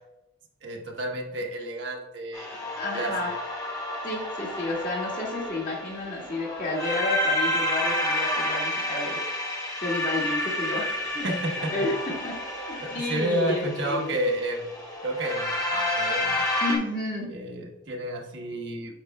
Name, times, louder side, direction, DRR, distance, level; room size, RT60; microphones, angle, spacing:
voice 1, 0.6-3.3 11.2-11.7 12.8-14.7 15.0-16.4 17.3-19.0, right 1 dB, 75° right, 1 dB, 1.1 m, -31 dB
sound 1, 2.3-16.8, left 1 dB, 20° left, 1.5 m, -30 dB
voice 2, 2.8-3.3 4.0-9.2 9.8-10.9 11.1-11.3 11.7-12.4 12.7-14.2 16.6-17.3, left 2 dB, 45° left, -3 dB, 1.8 m, -31 dB
9.3 x 5.3 x 2.2 m, 0.93 s
head